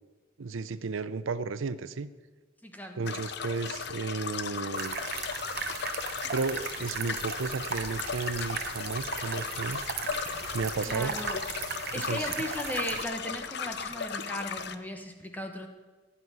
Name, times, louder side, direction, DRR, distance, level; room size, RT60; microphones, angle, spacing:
voice 1, 0.4-2.1 2.9-5.0 6.3-9.8 10.5-11.1 11.9-12.3, right 4 dB, 85° right, 14 dB, 0.6 m, -33 dB
voice 2, 2.6-3.0 10.1-10.4 10.9-11.4 11.9-15.7, left 1 dB, 10° left, 5 dB, 1.2 m, -37 dB
sound 1, 3.0-14.7, left 6 dB, 60° left, 0.7 m, -36 dB
sound 2, 4.7-13.0, right 7 dB, 50° right, 0.9 m, -37 dB
15.5 x 5.8 x 9.5 m, 1.4 s
head